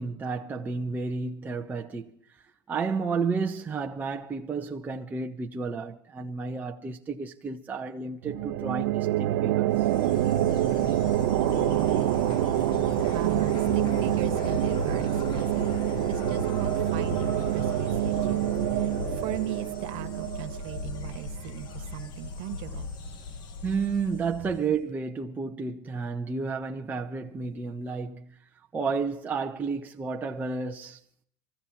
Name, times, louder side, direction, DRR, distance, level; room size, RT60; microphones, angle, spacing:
voice 1, 0.0-2.4 2.7-9.9 23.6-28.4 28.7-31.0, right 4 dB, 15° right, 0.7 m, -31 dB
sound 1, 8.2-21.6, right 15 dB, 75° right, 0.8 m, -27 dB
Insect, 9.7-24.8, left 4 dB, 40° left, 1.1 m, -36 dB
voice 2, 13.0-15.6 16.1-22.9, right 13 dB, 50° right, 1.4 m, -39 dB
25.5 x 15.0 x 2.9 m
supercardioid pair, 135°, 12 cm